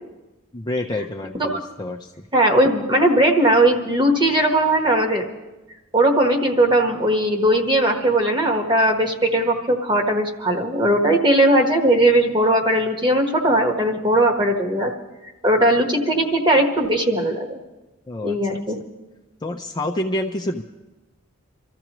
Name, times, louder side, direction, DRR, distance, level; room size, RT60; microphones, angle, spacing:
voice 1, 0.5-2.1 18.1-18.4 19.4-20.6, left 1 dB, 20° left, 2 dB, 0.5 m, -27 dB
voice 2, 2.3-5.2 5.9-14.9 15.4-17.5 18.2-18.8, right 1 dB, 20° right, 3 dB, 1.3 m, -18 dB
26.0 x 14.0 x 3.0 m, 1.1 s
head